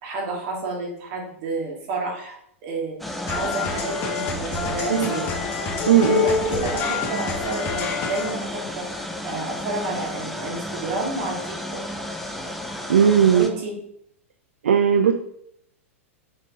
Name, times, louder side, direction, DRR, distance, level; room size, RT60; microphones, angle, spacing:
voice 1, 0.0-2.4 2.6-5.3 6.1-11.8 13.3-13.7, right 3 dB, 40° right, -1 dB, 2.5 m, -30 dB
sound 1, 3.0-13.5, left 1 dB, ahead, 0.8 m, -33 dB
sound 2, 3.3-8.5, left 5 dB, 30° left, 1.6 m, -27 dB
voice 2, 5.9-6.3 12.9-13.5 14.6-15.1, right 8 dB, 65° right, 9 dB, 0.5 m, -17 dB
6.5 x 5.9 x 3.9 m, 0.73 s
figure-of-eight pair, 95°, 7 cm